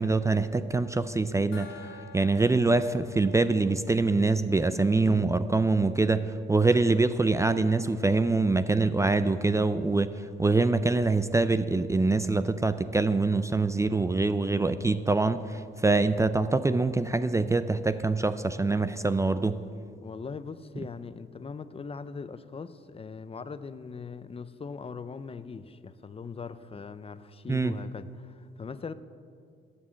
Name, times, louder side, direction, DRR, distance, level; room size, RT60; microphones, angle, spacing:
voice 1, 0.0-19.6 27.5-27.7, right 3 dB, 15° right, 12 dB, 0.4 m, -25 dB
Gong, 1.5-4.8, left 5 dB, 85° left, 2.5 m, -50 dB
voice 2, 20.0-28.9, left 5 dB, 30° left, 13 dB, 0.6 m, -40 dB
12.5 x 7.2 x 7.5 m, 2.3 s
cardioid pair, 90°, 20 cm